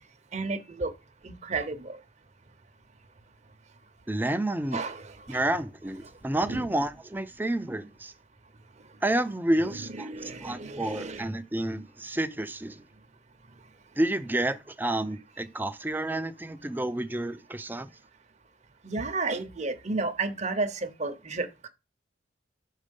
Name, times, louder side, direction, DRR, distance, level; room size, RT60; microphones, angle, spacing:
voice 1, 0.3-0.9 1.2-2.0 4.7-5.4 6.5-6.7 9.6-11.2 18.8-21.7, right 3 dB, 35° right, 0.8 m, -32 dB
voice 2, 4.1-4.8 5.3-8.1 9.0-12.8 14.0-17.9, right 1 dB, 10° right, 0.5 m, -30 dB
6.4 x 4.2 x 5.3 m
head